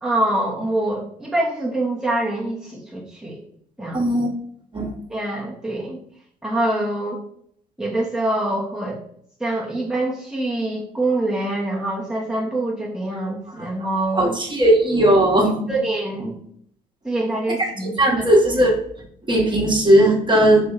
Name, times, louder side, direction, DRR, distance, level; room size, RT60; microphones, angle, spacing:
voice 1, 0.0-3.4 3.8-4.2 5.1-6.0 6.4-7.2 7.8-9.0 9.4-14.4 15.7-16.3 17.0-18.3 18.6-18.7, right 1 dB, 5° right, -4 dB, 1.1 m, -25 dB
voice 2, 3.9-4.3 4.7-4.9 13.6-13.7 14.2-15.7 17.8-18.8 19.3-20.7, right 1 dB, 20° right, 0 dB, 1.3 m, -17 dB
4.3 x 2.7 x 3.9 m, 0.66 s
figure-of-eight pair, 50°, 21 cm